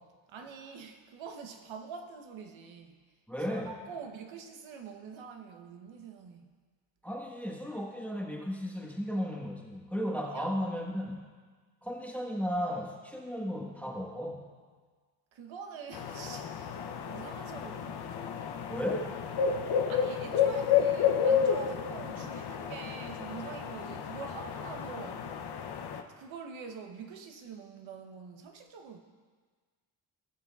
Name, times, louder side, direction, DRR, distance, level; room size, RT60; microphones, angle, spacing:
voice 1, 0.3-3.0 3.5-6.5 10.3-10.5 15.3-16.8 17.1-18.1 19.9-25.3 26.2-29.0, right 6 dB, 70° right, 5 dB, 1.1 m, -45 dB
voice 2, 3.3-3.7 7.0-11.2 11.8-14.5 18.7-19.2, equal, 5° left, -2 dB, 1.3 m, -35 dB
sound 1, 15.9-26.0, left 7 dB, 55° left, 0.8 m, -31 dB
15.5 x 6.9 x 2.4 m, 1.5 s
supercardioid pair, 60°, 48 cm